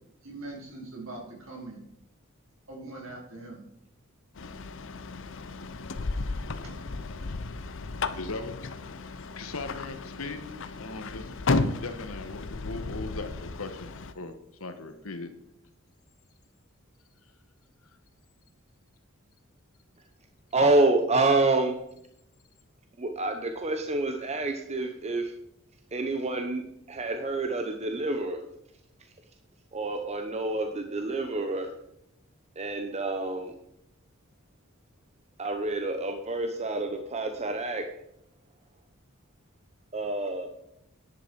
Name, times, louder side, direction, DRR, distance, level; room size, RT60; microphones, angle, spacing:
voice 1, 0.2-1.8 2.7-3.6 6.6-6.8, right 2 dB, 70° right, -2 dB, 4.4 m, -42 dB
sound 1, 4.4-14.1, left 3 dB, 65° left, 0.7 m, -34 dB
voice 2, 8.1-8.5 9.4-11.3 11.8-14.3 14.6-15.3, left 3 dB, 85° left, 9 dB, 1.4 m, -39 dB
voice 3, 20.5-21.7 23.0-25.3 25.9-28.4 29.7-31.7 32.6-33.5 35.4-37.8 39.9-40.5, right 2 dB, 30° right, 6 dB, 0.8 m, -28 dB
10.5 x 10.5 x 4.8 m, 0.78 s
head